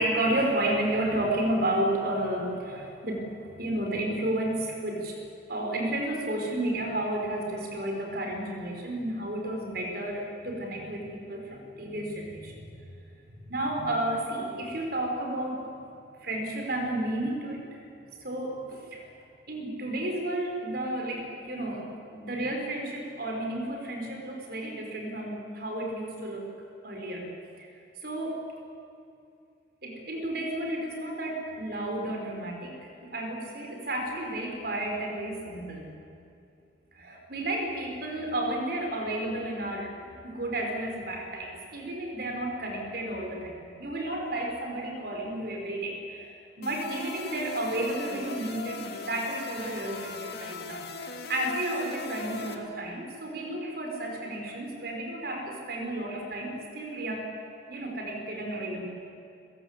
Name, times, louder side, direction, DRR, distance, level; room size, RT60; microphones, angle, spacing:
voice 1, 0.0-5.2 5.5-12.7 13.4-15.7 16.2-17.6 18.2-19.1 19.5-21.9 22.1-26.5 26.8-27.3 27.6-27.7 28.0-28.4 29.8-35.9 36.9-40.0 40.2-46.3 46.6-57.3 57.7-58.8, right 1 dB, 60° right, 1 dB, 5.3 m, -32 dB
sound 1, 46.6-52.5, left 3 dB, 60° left, 2.2 m, -39 dB
29.5 x 17.0 x 8.4 m, 2.6 s
head